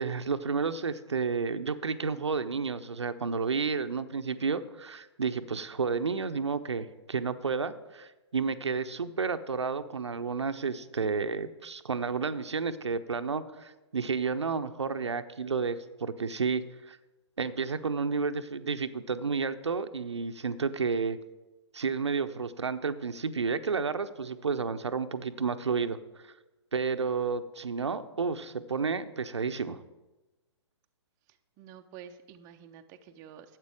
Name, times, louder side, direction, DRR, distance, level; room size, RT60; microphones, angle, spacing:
voice 1, 0.0-17.0 17.4-21.2 21.7-26.0 26.2-26.3 26.7-29.8, right 5 dB, 75° right, 10 dB, 0.7 m, -31 dB
voice 2, 31.6-33.6, right 8 dB, 20° right, 6 dB, 0.6 m, -49 dB
12.0 x 8.1 x 4.9 m, 1.1 s
figure-of-eight pair, 120°, 15 cm